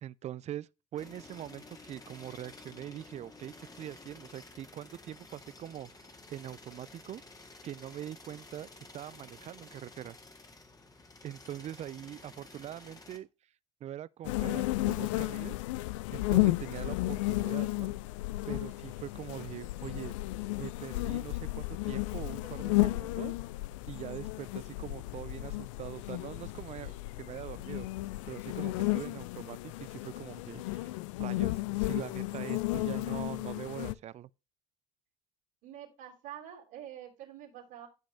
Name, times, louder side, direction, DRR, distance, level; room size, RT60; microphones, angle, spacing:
voice 1, 0.0-7.2 7.6-10.2 11.2-13.3 13.8-15.6 16.1-17.9 18.5-20.2 20.6-23.3 23.9-26.9 27.2-27.9 28.3-30.9 31.2-34.3, right 11 dB, 45° right, 0.4 m, -43 dB
sound 1, 1.0-13.2, left 3 dB, 25° left, 2.0 m, -52 dB
sound 2, 14.2-33.9, left 19 dB, 85° left, 0.4 m, -33 dB
voice 2, 35.6-37.9, right 10 dB, 75° right, 3.1 m, -47 dB
12.0 x 5.2 x 3.4 m
hypercardioid pair, 70°, 16 cm